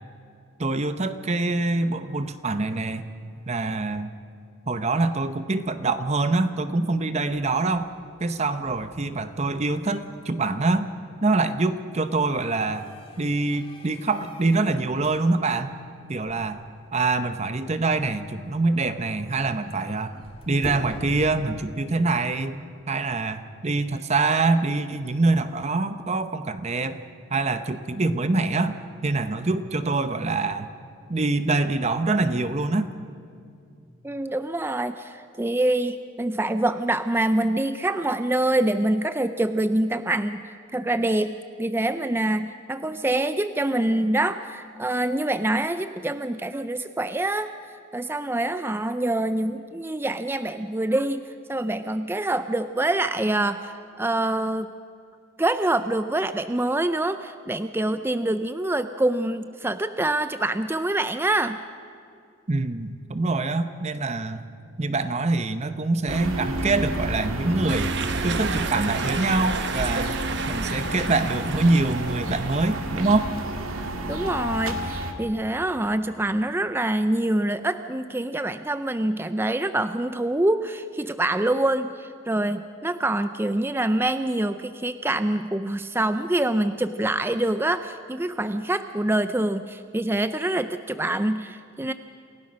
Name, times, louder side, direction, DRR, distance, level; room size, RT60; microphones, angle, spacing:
voice 1, 0.6-3.0 3.5-4.1 4.7-7.9 8.2-10.9 11.2-12.9 13.2-15.7 16.1-16.6 16.9-22.6 22.9-27.0 27.3-28.8 29.0-30.7 31.1-32.9 62.5-64.4 64.8-67.9 68.2-70.2 70.5-73.3, right 3 dB, 30° right, 11 dB, 0.8 m, -25 dB
sound 1, 6.9-22.0, left 1 dB, 25° left, 2.5 m, -46 dB
voice 2, 34.0-47.5 47.9-54.7 55.4-61.6 73.8-91.9, right 1 dB, 10° right, 11 dB, 0.4 m, -25 dB
sound 2, 66.1-75.1, right 1 dB, 90° right, 2.0 m, -30 dB
sound 3, 67.7-73.1, right 5 dB, 55° right, 1.2 m, -32 dB
28.0 x 16.5 x 6.3 m, 2.4 s
head